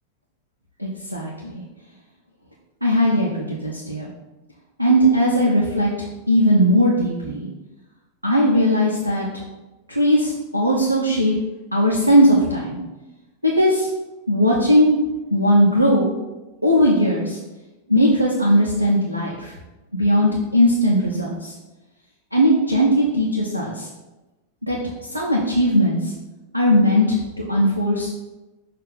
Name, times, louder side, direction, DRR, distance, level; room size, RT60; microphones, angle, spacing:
voice 1, 0.8-1.6 2.8-4.1 4.8-7.5 8.2-9.3 9.9-11.3 11.7-12.8 13.4-13.9 14.3-15.0 15.3-16.1 16.6-17.4 17.9-19.5 19.9-21.5 22.3-23.9 24.6-24.8 25.1-26.1 26.5-28.1, equal, 85° right, -4 dB, 0.9 m, -18 dB
6.7 x 2.8 x 5.4 m, 1.1 s
figure-of-eight pair, 90°, 0 cm